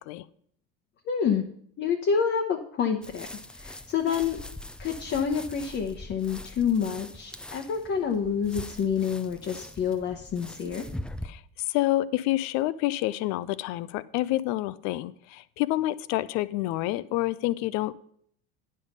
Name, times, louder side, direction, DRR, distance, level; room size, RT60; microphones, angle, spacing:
voice 1, 1.1-1.4 1.8-3.3 3.6-4.4 4.8-10.8, left 7 dB, 40° left, 3 dB, 0.9 m, -28 dB
sound 1, 3.0-11.3, left 1 dB, 5° left, 0.4 m, -42 dB
voice 2, 11.7-17.9, left 16 dB, 65° left, 17 dB, 0.5 m, -28 dB
9.4 x 5.4 x 5.4 m, 0.64 s
supercardioid pair, 95°, 30 cm